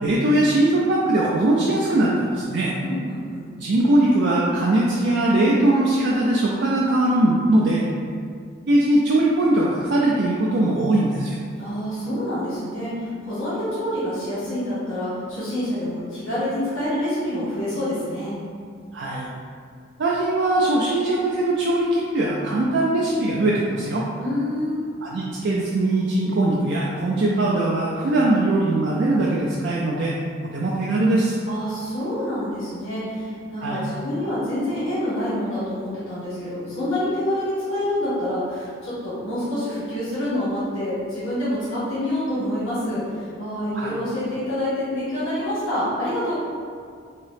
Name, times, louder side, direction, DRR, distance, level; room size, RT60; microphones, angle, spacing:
voice 1, 0.0-2.7 3.6-7.8 8.7-11.4 18.9-19.3 20.0-24.0 25.0-30.1 30.5-31.4 33.6-33.8 43.7-43.9, right 1 dB, 55° right, -4 dB, 0.4 m, -20 dB
voice 2, 2.8-3.4 11.6-18.3 24.2-24.8 31.5-46.3, left 1 dB, 80° left, -11 dB, 1.5 m, -27 dB
3.8 x 2.7 x 3.4 m, 2.1 s
head